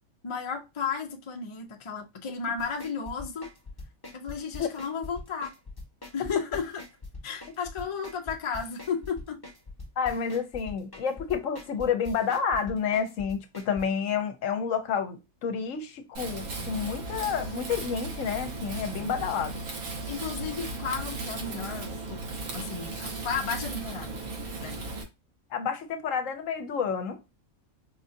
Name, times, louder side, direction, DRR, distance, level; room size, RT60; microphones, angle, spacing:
voice 1, 0.2-3.5 4.1-5.5 6.1-6.8 7.2-9.4 16.5-16.8 20.1-22.2 22.5-24.2 24.5-24.8, left 6 dB, 50° left, 0.3 m, -34 dB
sound 1, 2.6-13.8, left 2 dB, 15° left, 1.0 m, -42 dB
voice 2, 10.0-19.6 25.5-27.2, left 7 dB, 65° left, 1.0 m, -29 dB
Wind, 16.1-25.0, right 3 dB, 80° right, 1.4 m, -36 dB
4.7 x 2.5 x 2.5 m
omnidirectional pair, 1.5 m